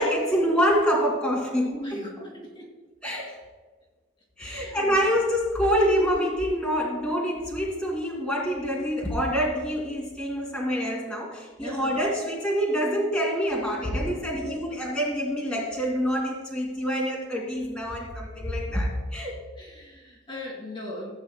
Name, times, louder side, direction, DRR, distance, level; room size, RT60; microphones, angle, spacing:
voice 1, 0.0-2.0 3.0-3.4 4.4-19.3, equal, 5° left, -4 dB, 2.1 m, -26 dB
voice 2, 1.7-2.7 4.4-4.9 11.6-11.9 14.1-14.8 19.6-21.1, left 1 dB, 20° left, -3 dB, 2.1 m, -39 dB
16.0 x 8.6 x 2.3 m, 1.3 s
head